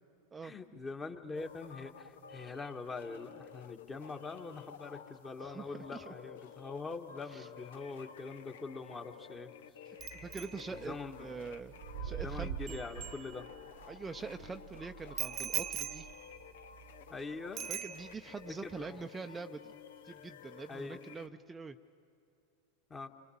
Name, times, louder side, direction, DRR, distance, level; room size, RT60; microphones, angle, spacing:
voice 1, 0.4-9.5 10.7-11.3 12.1-13.5 17.1-17.7 18.6-19.1 20.7-21.0 22.9-23.1, left 4 dB, 20° left, 5 dB, 1.8 m, -43 dB
sound 1, 1.3-21.3, left 7 dB, 75° left, 1.0 m, -53 dB
voice 2, 5.4-6.1 7.3-7.5 9.9-11.7 12.0-12.8 13.9-16.1 17.7-21.8, right 4 dB, 20° right, 6 dB, 0.7 m, -44 dB
Bicycle bell, 10.0-13.8 15.2-17.2 17.6-18.4 18.7-19.0, right 11 dB, 40° right, 1.1 m, -43 dB
sound 2, 10.2-10.6 11.7-16.1, right 9 dB, 70° right, 0.8 m, -45 dB
30.0 x 25.0 x 7.3 m, 2.6 s
hypercardioid pair, 95°, 0 cm